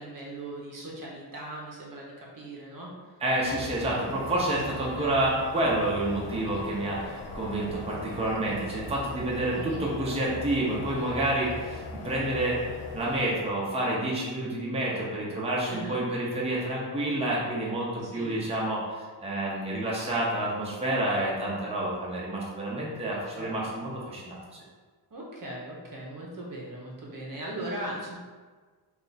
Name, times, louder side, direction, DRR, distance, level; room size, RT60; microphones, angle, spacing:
voice 1, 0.0-2.9 4.7-5.2 9.5-9.8 15.7-16.0 18.0-18.4 23.2-23.9 25.1-28.2, right 1 dB, 45° right, -3 dB, 0.8 m, -39 dB
voice 2, 3.2-12.6 12.9-24.4, right 1 dB, 15° right, -5 dB, 0.7 m, -29 dB
sound 1, 3.4-13.3, left 3 dB, 60° left, 0.6 m, -40 dB
3.3 x 2.5 x 4.0 m, 1.4 s
wide cardioid pair, 130°, 45 cm